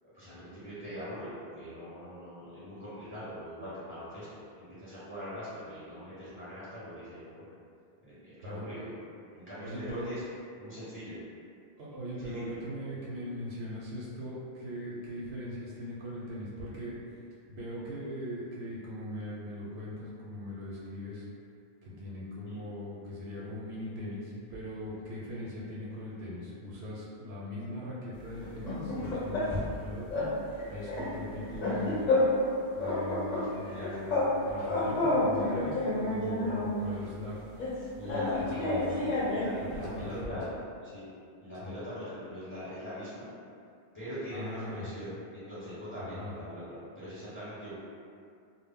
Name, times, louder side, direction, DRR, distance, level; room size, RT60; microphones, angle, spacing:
voice 1, 0.0-7.4 8.0-8.9 9.3-10.2 10.6-11.2 12.2-12.5 22.4-22.6 33.3-33.9 38.0-38.5 39.3-40.5 40.8-41.1 41.4-43.3 43.9-47.7, equal, 10° left, -13 dB, 1.0 m, -42 dB
voice 2, 9.6-10.2 11.8-17.0 17.5-21.2 21.8-30.3 30.7-32.1 32.7-37.4 38.0-39.1 39.6-40.4 41.6-41.7 44.3-44.9 46.1-46.3, left 1 dB, 70° right, -6 dB, 0.8 m, -40 dB
sound 1, 28.4-29.8 30.1-30.3 30.6-32.5 32.8-34.3 34.6-36.8 37.6-39.6, left 2 dB, 50° left, 0.6 m, -29 dB
2.1 x 2.0 x 3.5 m, 2.3 s
omnidirectional pair, 1.1 m